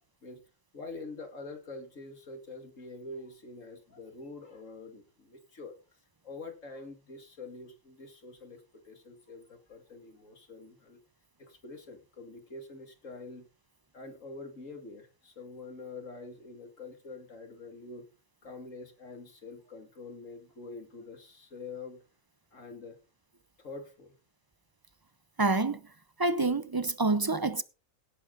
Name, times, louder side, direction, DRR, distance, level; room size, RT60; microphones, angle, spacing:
voice 1, 0.7-5.7 6.2-11.0 11.4-13.5 13.9-18.1 18.4-22.0 22.5-23.0 23.6-24.2, left 3 dB, 70° left, 2.9 m, -45 dB
voice 2, 25.4-25.8 26.2-27.6, right 3 dB, 30° right, 0.4 m, -27 dB
17.0 x 8.7 x 4.0 m
omnidirectional pair, 1.4 m